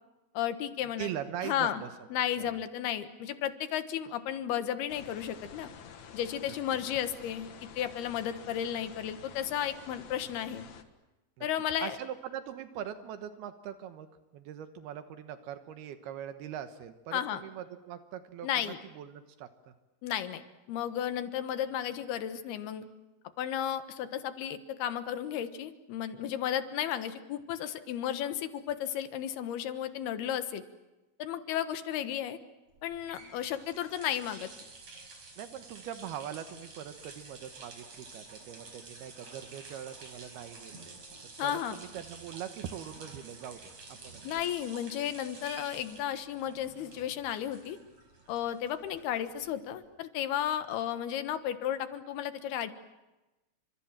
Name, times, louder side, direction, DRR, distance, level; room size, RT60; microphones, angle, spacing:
voice 1, 0.3-1.1 1.4-1.8 2.1-5.7 6.1-10.6 11.4-12.0 17.1-17.4 18.4-18.8 20.0-20.4 20.7-22.9 23.4-30.6 31.2-32.4 32.8-34.5 41.4-41.8 44.2-47.8 48.3-52.7, left 10 dB, 85° left, 10 dB, 3.4 m, -33 dB
voice 2, 1.0-1.9 2.4-2.6 6.5-6.6 11.4-11.5 11.8-14.1 14.3-18.5 19.0-19.7 35.4-41.0 41.4-43.6 44.0-44.2, right 10 dB, 85° right, 9 dB, 3.2 m, -41 dB
sound 1, 4.9-10.8, left 7 dB, 55° left, 2.6 m, -50 dB
sound 2, 32.7-49.8, right 3 dB, 45° right, 5.6 m, -50 dB
30.0 x 26.0 x 7.4 m, 1.1 s
omnidirectional pair, 4.4 m